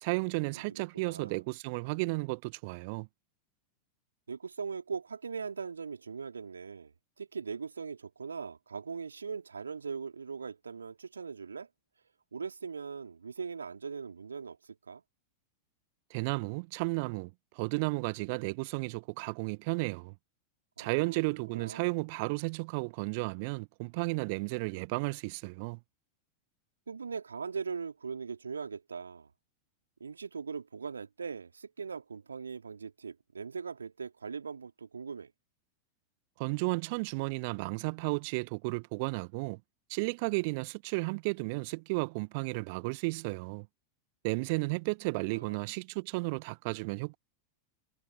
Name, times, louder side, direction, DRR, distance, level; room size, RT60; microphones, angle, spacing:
voice 1, 0.0-3.1 16.1-20.1 20.8-25.8 36.4-39.6 39.9-43.7 44.2-47.2, right 29 dB, 45° right, 1.3 m, -33 dB
voice 2, 0.5-1.4 4.3-11.7 12.3-15.0 20.8-21.2 21.5-21.9 26.9-29.3 30.0-35.3 45.2-45.6, right 5 dB, 75° right, 4.0 m, -40 dB
figure-of-eight pair, 90°, 0 cm